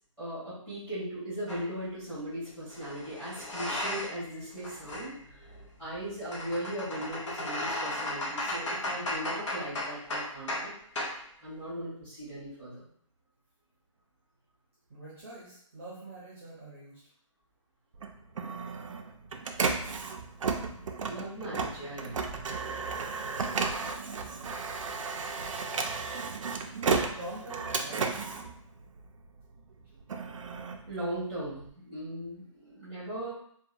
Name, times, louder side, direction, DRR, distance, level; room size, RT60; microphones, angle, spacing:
voice 1, 0.2-5.4 5.8-10.7 11.4-12.9 21.1-22.2 30.8-33.3, right 1 dB, 5° left, -14 dB, 1.1 m, -38 dB
sound 1, 1.5-1.7 2.7-4.3 4.6-10.7 11.0-11.2, left 1 dB, 60° left, 0.7 m, -35 dB
voice 2, 14.9-17.0 25.1-25.6 27.1-28.3, right 1 dB, 25° right, -8 dB, 0.7 m, -45 dB
Printer, 17.9-29.4 29.8-31.7, right 4 dB, 70° right, 0.4 m, -33 dB
2.8 x 2.2 x 2.5 m, 0.65 s
hypercardioid pair, 175°, 17 cm